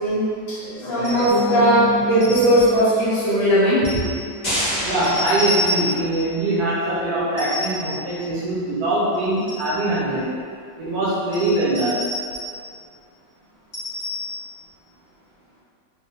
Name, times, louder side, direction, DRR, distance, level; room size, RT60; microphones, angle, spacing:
voice 1, 0.0-4.0, equal, 75° left, -11 dB, 1.4 m, -18 dB
sound 1, 1.0-1.5 2.2-2.9 3.8-4.2 5.0-6.2 7.4-8.0 9.1-9.8 11.3-12.7 13.7-14.4, left 1 dB, 35° left, 1.0 m, -29 dB
sound 2, 1.3-6.9, right 4 dB, 80° right, 1.3 m, -33 dB
sound 3, 4.4-6.3, equal, 50° left, 0.5 m, -27 dB
voice 2, 4.8-10.3 10.8-12.0, right 2 dB, 65° right, -8 dB, 1.3 m, -22 dB
3.3 x 2.3 x 2.8 m, 2.2 s
omnidirectional pair, 2.0 m